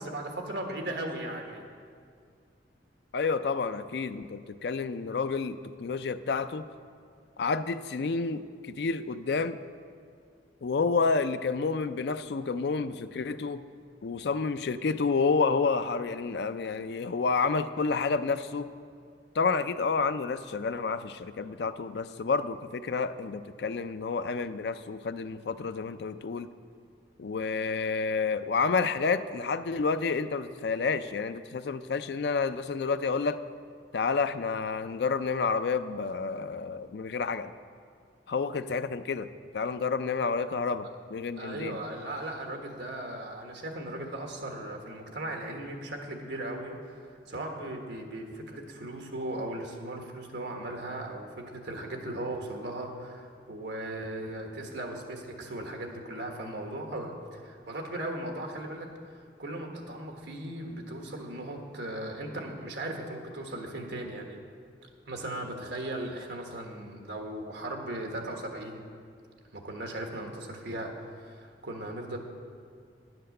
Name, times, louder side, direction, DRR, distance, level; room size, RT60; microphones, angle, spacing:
voice 1, 0.0-1.6 41.4-64.4 65.1-68.8 69.5-70.9 71.2-72.2, right 1 dB, 70° right, 2 dB, 1.4 m, -37 dB
voice 2, 3.1-6.7 7.4-9.6 10.6-13.6 14.0-18.7 19.4-26.5 27.2-33.4 33.9-37.5 38.3-39.3 39.5-41.8, left 4 dB, 65° left, 12 dB, 0.4 m, -29 dB
10.0 x 7.9 x 6.5 m, 2.2 s
head